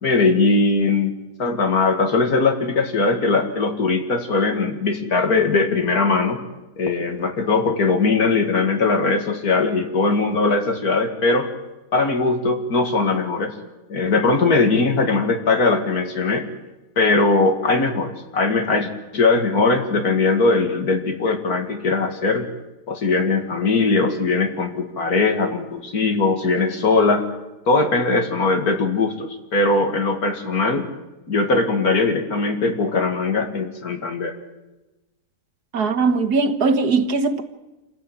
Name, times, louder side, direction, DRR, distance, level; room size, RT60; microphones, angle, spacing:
voice 1, 0.0-1.1 1.4-6.4 6.8-11.5 11.9-13.6 13.9-16.5 17.0-22.5 22.9-27.3 27.7-30.9 31.3-34.4, left 3 dB, 60° left, 2.6 m, -20 dB
voice 2, 35.7-37.4, right 4 dB, 65° right, 1.8 m, -20 dB
27.0 x 15.5 x 8.8 m
omnidirectional pair, 1.8 m